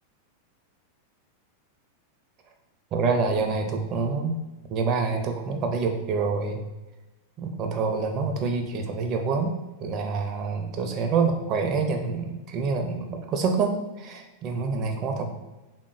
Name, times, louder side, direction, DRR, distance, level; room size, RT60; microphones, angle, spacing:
voice 1, 2.9-4.4 4.7-6.6 7.4-9.5 9.8-15.3, right 4 dB, 35° right, 4 dB, 0.5 m, -26 dB
3.4 x 2.1 x 3.8 m, 1.1 s
figure-of-eight pair, 90°, 0 cm